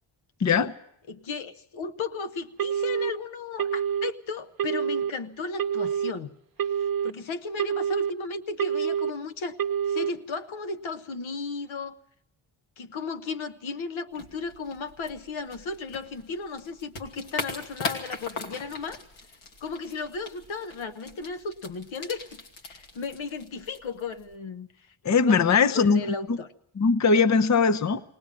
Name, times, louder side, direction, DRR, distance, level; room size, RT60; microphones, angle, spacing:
voice 1, 0.4-0.7 25.0-26.4 26.8-28.0, left 5 dB, 35° left, 14 dB, 0.8 m, -21 dB
voice 2, 1.1-6.3 7.0-9.6 9.9-12.0 12.8-19.0 19.6-24.9 25.2-26.5, left 4 dB, 70° left, 8 dB, 1.2 m, -35 dB
Telephone, 2.6-3.1 3.6-4.1 4.6-5.1 5.6-6.1 6.6-7.1 7.6-8.1 8.6-9.1 9.6-10.1, right 8 dB, 45° right, 0.9 m, -27 dB
sound 1, 14.1-24.4, left 3 dB, 85° left, 2.7 m, -40 dB
20.0 x 18.5 x 7.4 m, 0.73 s
cardioid pair, 60°, 50 cm